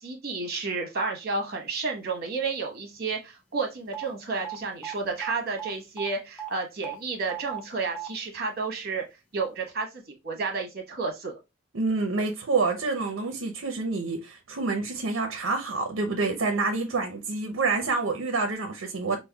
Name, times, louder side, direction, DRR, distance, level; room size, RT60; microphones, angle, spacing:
voice 1, 0.0-9.0 9.3-11.3, right 4 dB, 50° right, 1.1 m, -31 dB
sound 1, 3.9-4.0 4.4-4.6 4.8-5.3 5.6-5.7 6.0-6.1 6.4-6.5 6.8-6.9 7.3-7.6 7.9-8.1, right 10 dB, 5° left, 0.6 m, -36 dB
voice 2, 11.7-19.2, right 3 dB, 80° right, 0.6 m, -27 dB
5.2 x 2.1 x 2.2 m
head